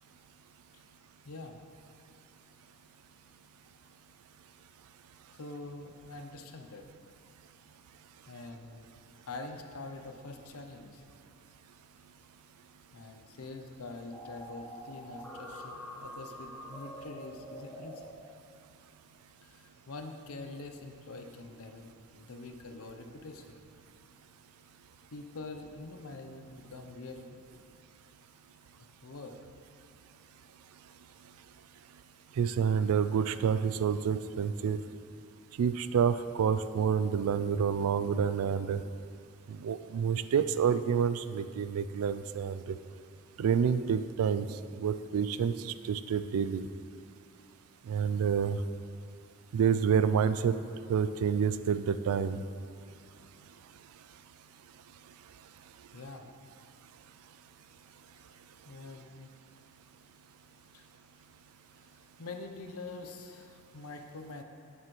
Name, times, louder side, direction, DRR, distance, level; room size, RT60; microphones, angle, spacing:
voice 1, 1.2-1.6 5.3-6.9 8.3-8.9 9.2-11.0 12.9-18.0 19.4-23.6 25.1-27.7 29.0-29.4 55.9-56.3 58.1-59.3 60.7-60.8 61.8-64.4, left 3 dB, 80° left, 5 dB, 0.6 m, -45 dB
sound 1, 14.1-18.0, equal, 5° left, 1.1 m, -45 dB
voice 2, 32.4-34.8 35.6-38.8 39.5-42.8 43.4-44.5 44.8-46.6 47.9-48.6 49.5-50.6 50.9-52.4, right 7 dB, 80° right, 13 dB, 0.3 m, -28 dB
8.2 x 7.4 x 3.1 m, 2.4 s
head